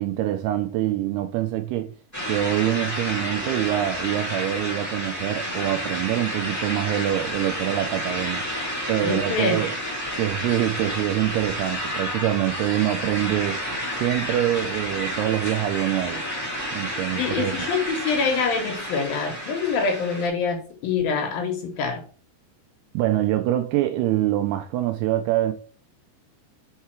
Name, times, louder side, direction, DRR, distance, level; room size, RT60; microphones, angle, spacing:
voice 1, 0.0-1.9 2.3-8.4 8.9-9.7 10.2-13.7 14.0-16.2 16.7-17.5 22.9-25.5, right 13 dB, 85° right, 2.3 m, -25 dB
sound 1, 2.1-20.3, equal, 15° left, 0.5 m, -30 dB
voice 2, 9.0-9.6 17.1-22.0, left 5 dB, 70° left, 2.5 m, -25 dB
5.6 x 4.7 x 4.4 m
omnidirectional pair, 5.0 m